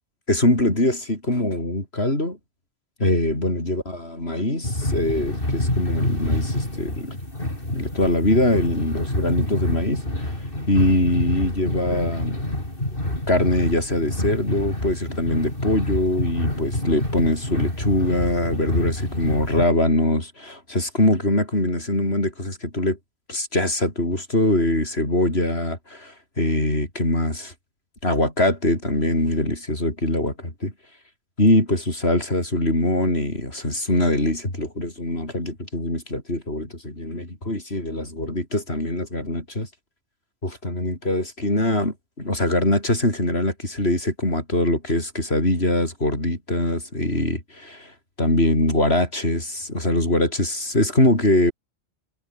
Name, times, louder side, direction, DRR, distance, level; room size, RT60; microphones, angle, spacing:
voice 1, 0.3-2.4 3.0-7.2 7.7-10.0 10.7-12.4 13.3-23.0 23.3-27.5 28.0-30.7 31.4-39.7 40.4-47.9 48.2-51.5, left 1 dB, 70° left, 7.0 m, -23 dB
sound 1, 4.6-19.6, left 1 dB, 55° left, 7.3 m, -27 dB
omnidirectional pair, 1.1 m